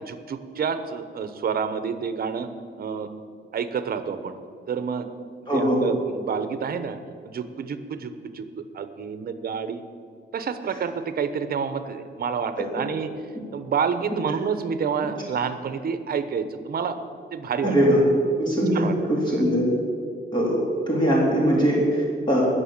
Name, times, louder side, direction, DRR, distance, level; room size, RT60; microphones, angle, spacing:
voice 1, 0.0-2.5 2.8-3.1 3.5-4.4 4.7-5.1 5.5-7.0 7.2-8.4 8.7-9.8 10.3-13.1 13.5-17.0 17.3-17.8 18.7-19.4, right 6 dB, 55° right, 10 dB, 1.0 m, -28 dB
voice 2, 17.6-18.0 18.4-19.7 20.3-20.6 20.9-22.4, equal, 25° left, -5 dB, 3.7 m, -21 dB
20.0 x 7.0 x 7.3 m, 2.2 s
wide cardioid pair, 140°, 19 cm